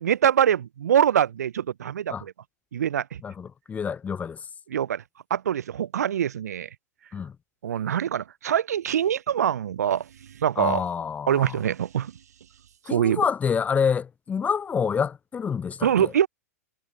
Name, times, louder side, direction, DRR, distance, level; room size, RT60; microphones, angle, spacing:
voice 1, 0.0-2.3 2.7-3.1 4.7-5.0 5.3-6.7 7.6-10.1 10.4-10.8 11.3-12.1 12.9-13.2 15.8-16.3, right 9 dB, 75° right, 0.5 m, -24 dB
voice 2, 3.2-4.4 7.1-7.3 10.6-11.6 12.9-16.1, left 6 dB, 15° left, 0.4 m, -27 dB
figure-of-eight pair, 100°, 9 cm